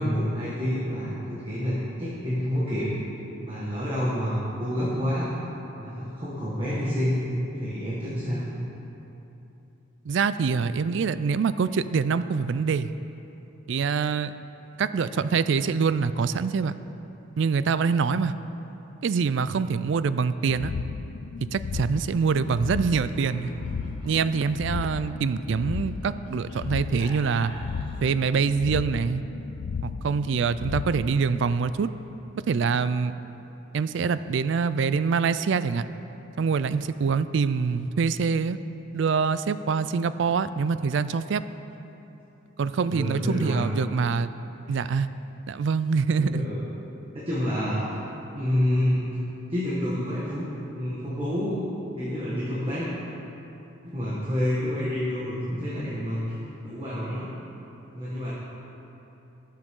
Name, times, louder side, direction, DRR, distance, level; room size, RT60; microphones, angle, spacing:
voice 1, 0.0-2.9 3.4-5.3 5.7-7.2 7.6-8.4 42.9-43.7 44.7-44.8 46.2-46.6 47.1-48.0 48.3-49.1 49.5-50.5 50.7-51.6 52.0-52.9 53.8-56.3 56.6-57.3 57.9-58.3, equal, 25° right, -8 dB, 1.6 m, -28 dB
voice 2, 10.1-12.9 13.7-14.3 14.8-16.7 17.4-18.3 19.0-20.7 21.5-23.5 24.0-27.5 28.0-29.2 29.8-31.9 32.5-33.1 33.7-35.8 36.4-38.6 38.9-41.4 42.6-44.3 44.7-45.1 45.5-46.5, right 5 dB, 60° right, 13 dB, 0.3 m, -25 dB
sound 1, 20.4-32.2, left 5 dB, 70° left, 0.3 m, -35 dB
Laughter, 22.8-28.2, equal, 25° left, 1.7 m, -45 dB
18.0 x 7.5 x 3.8 m, 3.0 s
head